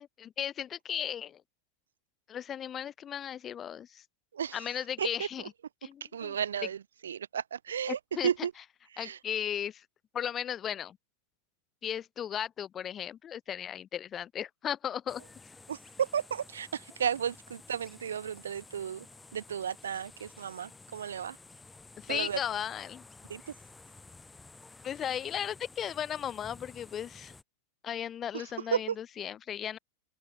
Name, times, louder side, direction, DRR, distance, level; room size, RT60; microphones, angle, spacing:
voice 1, 0.0-1.4 2.3-4.0 4.5-5.4 5.8-6.4 7.9-8.3 9.0-9.8 10.1-11.0 11.8-15.2 22.0-23.0 24.8-27.3 27.8-29.8, left 9 dB, 25° left, 2.5 m, -36 dB
voice 2, 6.1-6.8 7.0-8.5 8.9-9.2 15.7-19.0 19.3-21.4 22.1-22.4 23.3-23.4 28.3-28.4 28.7-28.9, right 8 dB, 65° right, 1.4 m, -33 dB
sound 1, 15.1-27.4, left 3 dB, 10° left, 4.8 m, -53 dB
figure-of-eight pair, 90°, 0 cm